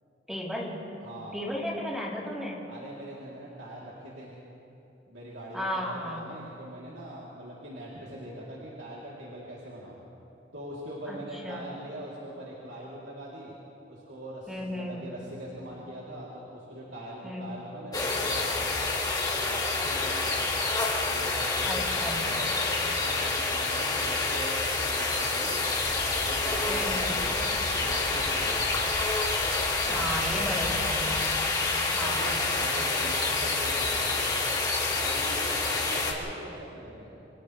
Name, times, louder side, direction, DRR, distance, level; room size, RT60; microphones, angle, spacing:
voice 1, 0.3-0.9 1.3-2.7 5.5-6.2 11.1-11.2 11.4-11.7 14.5-15.1 17.2-17.6 21.7-22.2 26.7-27.3 29.9-31.2 31.9-32.7, equal, ahead, -5 dB, 3.5 m, -34 dB
voice 2, 1.0-1.4 2.7-4.3 5.1-10.0 10.5-13.5 13.9-19.0 19.4-20.6 21.0-25.6 26.0-28.7 29.8-30.7 31.6-34.4 34.9-37.1, right 1 dB, 80° right, -7 dB, 3.3 m, -42 dB
sound 1, 17.9-36.1, left 3 dB, 20° left, 2.4 m, -28 dB
sound 2, 25.8-31.6, equal, 40° left, 3.4 m, -43 dB
29.0 x 27.0 x 3.3 m, 2.9 s
head